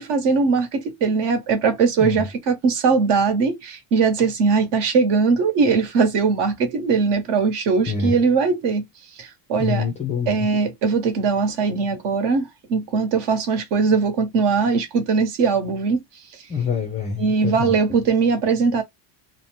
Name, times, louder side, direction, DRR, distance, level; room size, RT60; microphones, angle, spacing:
voice 1, 0.0-8.8 9.2-9.9 10.3-16.0 17.2-18.8, right 5 dB, 60° right, 1.1 m, -20 dB
voice 2, 9.6-10.5 16.5-17.7, left 6 dB, 20° left, 0.3 m, -26 dB
2.6 x 2.1 x 3.2 m
cardioid pair, 165°, 46 cm